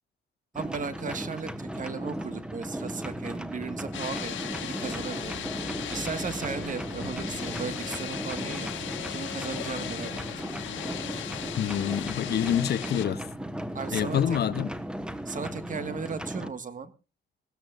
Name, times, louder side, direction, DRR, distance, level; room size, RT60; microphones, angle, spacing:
sound 1, 0.5-16.5, right 1 dB, 5° right, 1.2 m, -36 dB
voice 1, 0.5-5.4 5.9-8.7 9.1-10.1 13.7-14.2 15.2-16.9, right 5 dB, 40° right, 1.6 m, -36 dB
sound 2, 3.9-13.0, left 10 dB, 70° left, 1.7 m, -37 dB
voice 2, 11.6-13.3 13.9-14.7, left 9 dB, 55° left, 0.7 m, -27 dB
20.5 x 16.0 x 2.5 m
cardioid pair, 90°, 20 cm